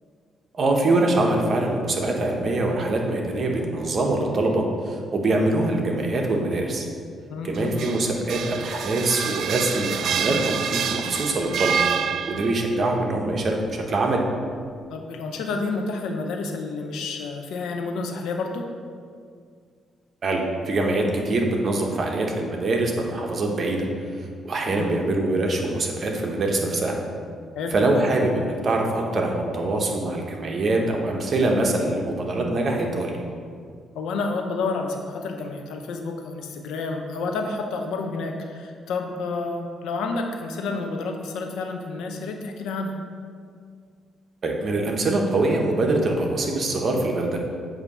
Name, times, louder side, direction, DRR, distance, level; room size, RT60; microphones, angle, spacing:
voice 1, 0.5-6.9 7.4-11.8 12.2-14.2 20.2-27.0 27.7-33.2 44.4-47.4, right 2 dB, 45° right, 1 dB, 1.0 m, -24 dB
voice 2, 7.3-7.8 14.9-18.7 24.8-24.9 27.5-27.8 33.9-42.9, left 3 dB, 85° left, 3 dB, 0.7 m, -30 dB
sound 1, 7.5-12.7, right 7 dB, 70° right, 0.3 m, -27 dB
8.0 x 2.8 x 5.4 m, 2.1 s
cardioid pair, 90°, 0 cm